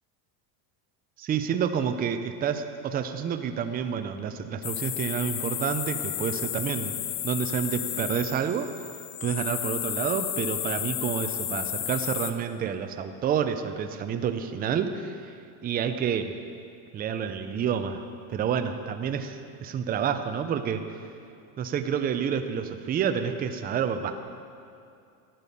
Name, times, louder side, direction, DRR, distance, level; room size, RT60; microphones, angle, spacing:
voice 1, 1.2-6.9 7.2-8.7 9.2-15.3 15.6-16.3 16.9-21.0 21.6-24.1, right 7 dB, 20° right, 8 dB, 0.5 m, -29 dB
sound 1, 4.6-12.3, left 12 dB, 65° left, 0.9 m, -32 dB
13.0 x 9.0 x 5.4 m, 2.5 s
supercardioid pair, 135°, 45 cm